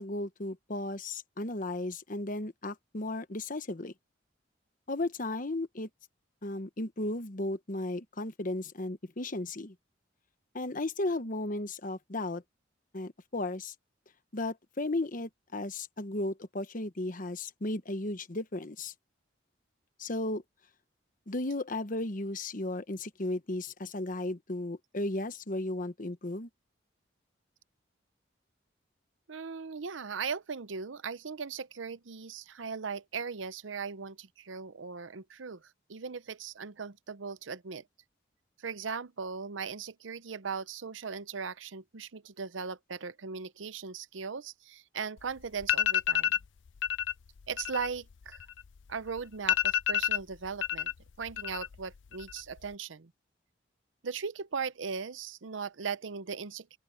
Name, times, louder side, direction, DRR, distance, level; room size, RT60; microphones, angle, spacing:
voice 1, 0.0-3.9 4.9-5.9 6.4-9.7 10.5-12.4 12.9-13.7 14.3-18.9 20.0-20.4 21.3-26.5, left 2 dB, 45° left, 1.1 m, -35 dB
voice 2, 29.3-37.8 38.6-46.3 47.5-48.4 48.9-50.9 51.2-53.1 54.0-56.8, right 5 dB, 80° right, 0.7 m, -38 dB
sound 1, 45.2-45.3 45.6-46.5 46.8-47.1 47.4-48.9 49.2-49.3 49.5-50.9 51.2-51.8 52.1-52.7, left 10 dB, 75° left, 0.5 m, -29 dB
open air
head